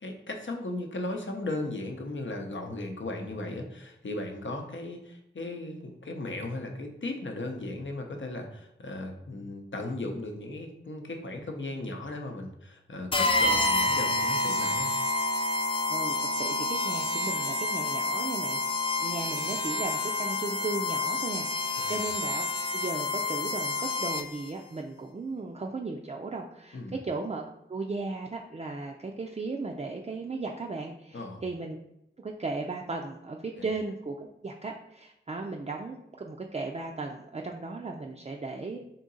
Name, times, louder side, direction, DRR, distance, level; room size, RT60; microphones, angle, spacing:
voice 1, 0.0-14.9 21.8-22.0 26.7-27.0 31.1-31.4, left 2 dB, 70° left, 3 dB, 0.7 m, -36 dB
sound 1, 13.1-24.5, left 2 dB, 25° left, 0.4 m, -28 dB
voice 2, 15.9-22.4 22.7-31.8 32.2-34.2 34.4-38.8, right 3 dB, 35° right, 0 dB, 0.4 m, -36 dB
3.7 x 2.8 x 3.9 m, 0.83 s
wide cardioid pair, 50°, 20 cm